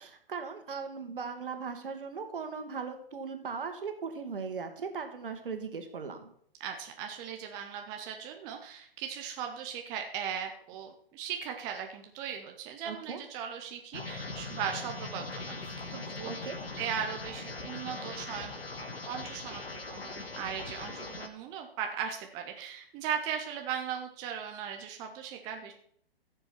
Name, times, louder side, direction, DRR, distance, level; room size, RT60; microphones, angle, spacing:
voice 1, 0.0-6.3 12.8-13.2 16.3-16.6, right 5 dB, 60° right, 6 dB, 1.9 m, -38 dB
voice 2, 6.6-16.3 16.8-25.7, right 8 dB, 15° right, 4 dB, 0.5 m, -38 dB
sound 1, 13.9-21.3, left 3 dB, 70° left, 1.6 m, -40 dB
14.5 x 6.9 x 4.5 m, 0.65 s
figure-of-eight pair, 125°, 30 cm